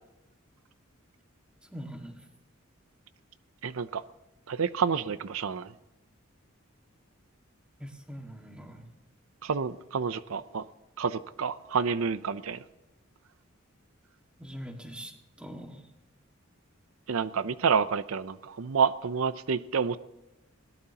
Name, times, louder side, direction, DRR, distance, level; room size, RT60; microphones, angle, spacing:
voice 1, 1.7-2.3 7.8-8.9 14.4-15.9, equal, 5° right, 2 dB, 1.8 m, -43 dB
voice 2, 3.6-4.0 4.5-5.7 9.4-10.6 11.0-12.6 17.1-20.0, right 6 dB, 85° right, 14 dB, 0.6 m, -29 dB
21.0 x 18.0 x 2.9 m, 0.99 s
head